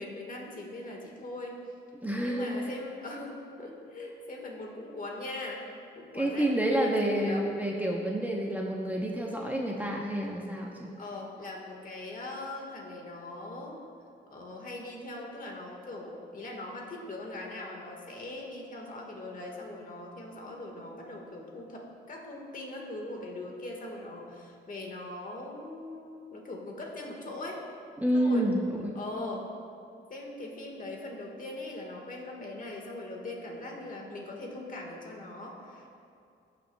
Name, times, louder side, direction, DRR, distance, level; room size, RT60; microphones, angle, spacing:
voice 1, 0.0-1.6 2.2-5.6 5.9-7.4 11.0-13.8 14.3-27.6 28.1-28.4 28.9-29.5 30.1-36.0, left 2 dB, 45° left, 0 dB, 1.6 m, -41 dB
voice 2, 2.0-2.5 6.1-10.9 28.0-28.9, right 1 dB, 10° right, -1 dB, 0.8 m, -29 dB
15.0 x 5.8 x 2.3 m, 2.6 s
cardioid pair, 75°, 20 cm